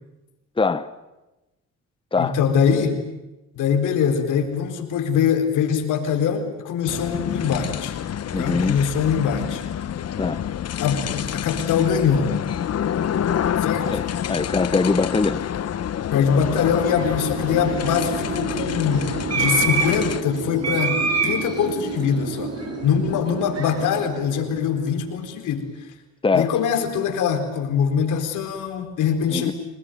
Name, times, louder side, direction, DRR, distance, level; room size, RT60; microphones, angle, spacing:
voice 1, 0.6-0.9 2.1-2.4 8.3-8.8 10.2-10.4 13.9-14.0 14.3-15.4 26.2-26.5 29.3-29.5, left 4 dB, 15° left, 1.1 m, -22 dB
voice 2, 2.2-3.0 3.5-8.0 8.4-9.6 10.8-12.3 13.6-13.9 16.1-19.1 19.4-21.0 21.2-22.5 22.8-25.7 26.3-29.5, left 7 dB, 85° left, 4.3 m, -23 dB
sound 1, 6.9-20.2, left 9 dB, 55° left, 1.2 m, -27 dB
sound 2, 16.7-25.1, right 4 dB, 55° right, 6.6 m, -28 dB
25.0 x 20.0 x 9.4 m
cardioid pair, 90°, 30 cm